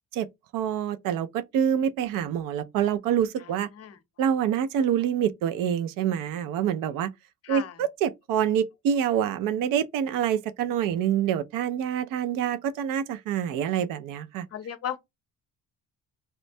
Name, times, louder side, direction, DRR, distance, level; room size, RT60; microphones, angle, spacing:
voice 1, 0.5-3.7 4.2-7.1 7.5-14.5, right 9 dB, 75° right, 0.5 m, -26 dB
voice 2, 3.4-4.0 7.4-7.8 14.5-15.0, left 10 dB, 45° left, 0.7 m, -36 dB
4.2 x 2.1 x 2.6 m
cardioid pair, 105°, 33 cm